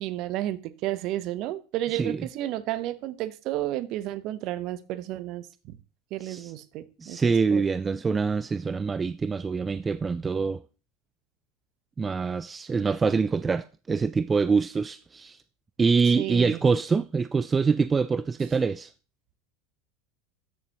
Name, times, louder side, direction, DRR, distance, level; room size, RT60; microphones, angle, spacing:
voice 1, 0.0-5.7 6.1-7.7 16.2-16.6, right 14 dB, 55° right, 0.8 m, -32 dB
voice 2, 7.0-10.6 12.0-15.4 15.8-18.9, right 5 dB, 20° right, 0.3 m, -25 dB
13.0 x 6.8 x 2.9 m
hypercardioid pair, 90°, 0 cm